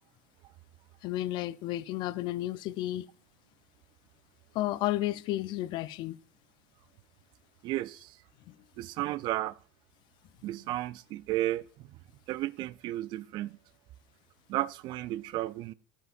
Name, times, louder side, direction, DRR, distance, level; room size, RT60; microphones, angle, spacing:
voice 1, 1.0-3.1 4.5-6.2 8.5-8.6, left 15 dB, 55° left, 0.5 m, -32 dB
voice 2, 7.6-8.2 8.8-9.6 10.4-12.0 12.3-13.6 14.5-15.7, right 15 dB, 55° right, 0.4 m, -33 dB
14.5 x 9.9 x 2.5 m
hypercardioid pair, 80°, 9 cm